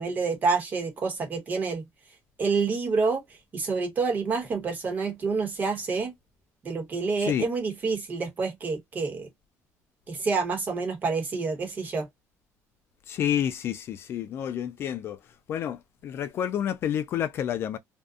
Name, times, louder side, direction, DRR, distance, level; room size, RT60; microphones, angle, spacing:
voice 1, 0.0-1.9 2.4-3.2 3.5-6.1 6.6-9.3 10.1-12.1, right 4 dB, 30° right, 1.1 m, -28 dB
voice 2, 13.1-15.2 15.5-17.8, left 10 dB, 40° left, 0.3 m, -29 dB
2.5 x 2.2 x 2.3 m
cardioid pair, 165°, 6 cm